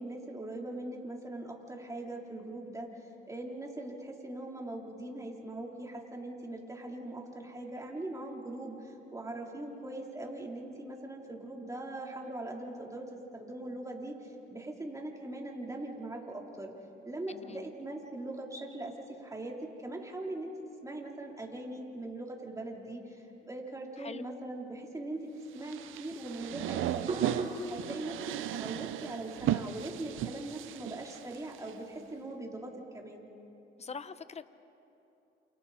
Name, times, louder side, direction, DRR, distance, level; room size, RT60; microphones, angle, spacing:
voice 1, 0.0-16.7 17.0-18.9 19.2-20.5 20.8-25.3 25.5-28.2 28.5-33.3, right 2 dB, 15° right, -1 dB, 3.6 m, -41 dB
voice 2, 17.3-17.7 24.0-24.2 33.8-34.5, left 5 dB, 35° left, 13 dB, 0.9 m, -43 dB
sound 1, 25.6-31.7, right 12 dB, 85° right, 0.7 m, -36 dB
Hands, 26.3-32.2, right 3 dB, 35° right, 6.6 m, -42 dB
29.0 x 28.5 x 4.2 m, 2.8 s
cardioid pair, 90°, 20 cm